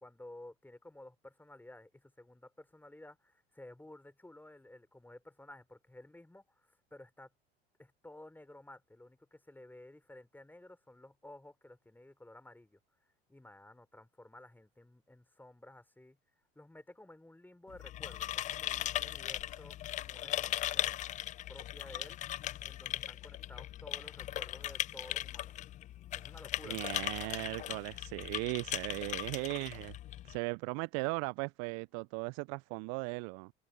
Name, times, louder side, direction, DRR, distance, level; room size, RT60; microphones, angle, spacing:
voice 1, 0.0-7.3 7.8-12.8 13.3-16.2 16.6-21.0 21.5-22.2 22.6-25.6 26.1-26.8, left 1 dB, 5° left, 3.9 m, -54 dB
sound 1, 17.7-30.4, left 13 dB, 25° left, 0.4 m, -38 dB
voice 2, 26.6-30.0 30.2-33.5, right 34 dB, 50° right, 0.9 m, -37 dB
open air
figure-of-eight pair, 75°, 31 cm